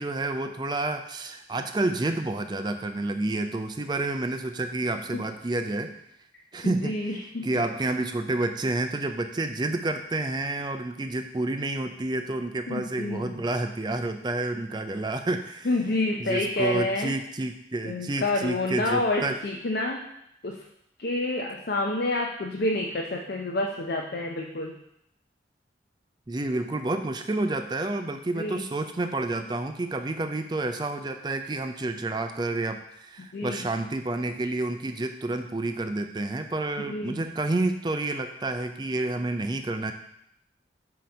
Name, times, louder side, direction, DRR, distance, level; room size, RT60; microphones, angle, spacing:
voice 1, 0.0-5.9 6.5-15.7 16.2-19.4 26.3-39.9, right 2 dB, 25° right, 7 dB, 0.4 m, -29 dB
voice 2, 6.6-7.6 12.7-13.4 15.6-17.1 17.8-20.0 20.4-20.6 21.0-24.7 28.4-28.6 33.3-33.7 36.9-37.2, left 2 dB, 60° left, 0 dB, 0.6 m, -28 dB
7.6 x 2.9 x 5.3 m, 0.77 s
head